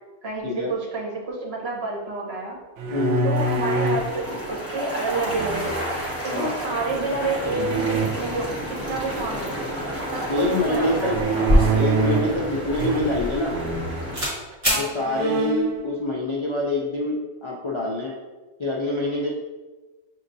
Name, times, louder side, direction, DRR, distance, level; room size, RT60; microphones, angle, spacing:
voice 1, 0.2-2.6 3.2-5.8 6.2-9.6 10.1-11.2 14.7-14.9, right 3 dB, 60° right, -2 dB, 1.2 m, -29 dB
sound 1, 2.8-4.1 5.3-6.0 7.5-8.1 11.0-12.4 12.8-13.3 13.5-13.9 14.5-14.6 15.0-15.7, right 4 dB, 80° right, 0.9 m, -25 dB
voice 2, 2.9-3.3 6.3-6.5 10.3-13.6 14.7-18.2 18.6-19.3, left 2 dB, 40° left, -4 dB, 0.4 m, -25 dB
sound 2, 3.3-14.3, equal, 15° right, 1.0 m, -31 dB
sound 3, 11.1-13.8 14.1-14.4 14.6-14.9, equal, 30° right, 1.7 m, -23 dB
7.2 x 2.8 x 2.6 m, 1.2 s
omnidirectional pair, 1.2 m